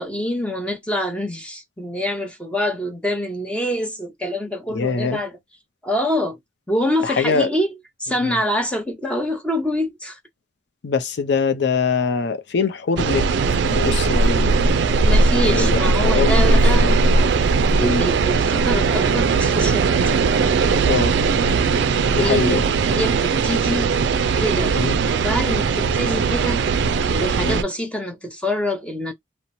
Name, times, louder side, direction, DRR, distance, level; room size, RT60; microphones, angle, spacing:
voice 1, 0.0-5.4 5.8-6.4 6.7-7.7 8.0-10.2 15.0-16.9 17.7-20.2 22.1-23.9 24.4-24.7 25.1-26.6 27.1-29.1, equal, 5° left, 0.7 m, -25 dB
voice 2, 4.7-5.2 7.0-7.5 8.2-8.4 10.8-13.3 13.6-14.8 15.4-17.0 17.8-18.1 20.9-21.2 22.2-22.6 24.7-25.0 27.4-27.6, left 5 dB, 65° left, 0.5 m, -23 dB
sound 1, 13.0-27.6, right 4 dB, 65° right, 0.3 m, -19 dB
2.9 x 2.0 x 2.6 m
head